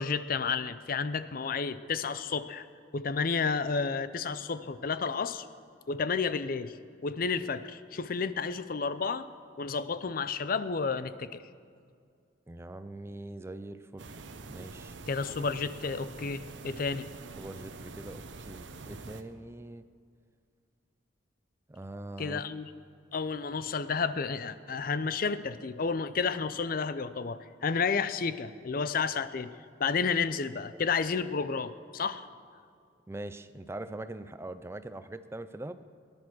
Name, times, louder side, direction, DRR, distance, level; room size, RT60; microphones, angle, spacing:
voice 1, 0.0-2.7 2.9-5.5 5.9-6.8 7.0-9.3 9.6-11.4 15.1-17.1 22.2-22.7 23.1-29.5 29.8-32.3, left 5 dB, 50° left, 14 dB, 0.5 m, -31 dB
voice 2, 12.5-14.1 14.5-15.0 17.4-19.9 21.7-22.4 33.1-35.8, right 2 dB, 15° right, 12 dB, 0.4 m, -42 dB
sound 1, 14.0-19.2, right 3 dB, 75° right, 0.9 m, -45 dB
19.0 x 10.5 x 6.2 m, 2.2 s
head